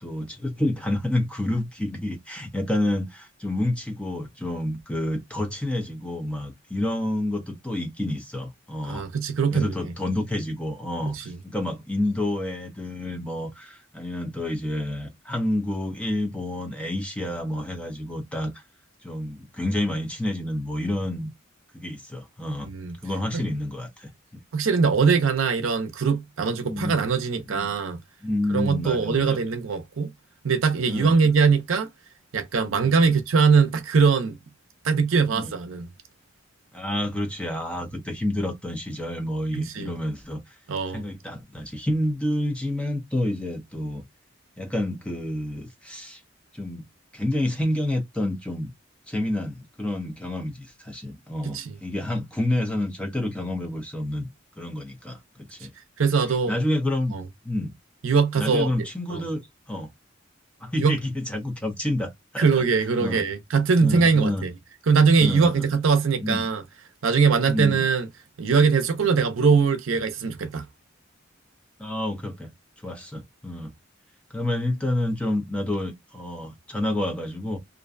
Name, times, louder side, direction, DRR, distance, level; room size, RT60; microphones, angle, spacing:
voice 1, 0.0-9.1 9.5-18.6 19.0-21.3 21.7-22.7 23.0-24.1 26.6-27.1 27.5-27.7 28.2-29.4 30.9-31.3 32.8-33.1 35.3-35.5 36.7-40.5 40.9-44.0 44.6-46.2 46.5-46.8 47.1-48.7 49.1-54.3 54.6-55.7 56.5-57.2 57.4-57.7 58.4-59.4 59.7-59.9 60.6-62.6 63.0-63.2 63.8-64.4 65.2-65.7 66.2-66.4 67.5-67.9 71.8-72.5 72.8-73.7 74.3-77.6, left 1 dB, 5° left, 0.6 m, -29 dB
voice 2, 8.9-9.9 11.1-11.4 22.6-22.9 23.3-23.5 24.5-28.0 28.5-30.1 30.4-31.9 32.3-34.4 34.8-35.9 39.5-39.9 40.7-41.0 51.4-51.7 56.0-56.5 57.1-57.2 58.0-58.7 59.1-59.2 60.8-61.0 62.4-64.5 64.9-66.6 67.0-68.1 68.4-70.7, right 5 dB, 85° right, 0.5 m, -21 dB
2.5 x 2.1 x 2.4 m
head